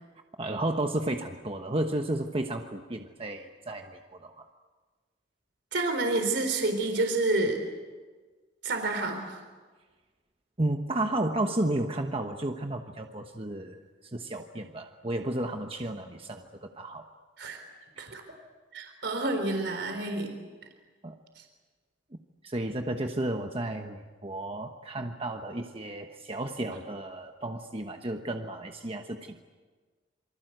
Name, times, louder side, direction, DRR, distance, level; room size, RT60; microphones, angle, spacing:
voice 1, 0.4-4.4 10.6-17.1 18.0-18.1 21.0-21.2 22.4-29.5, right 1 dB, 30° right, 4 dB, 1.2 m, -33 dB
voice 2, 5.7-7.6 8.6-9.4 17.4-17.6 18.0-18.2 18.7-20.3, right 2 dB, 70° right, 5 dB, 4.1 m, -29 dB
27.5 x 24.5 x 8.0 m, 1.4 s
head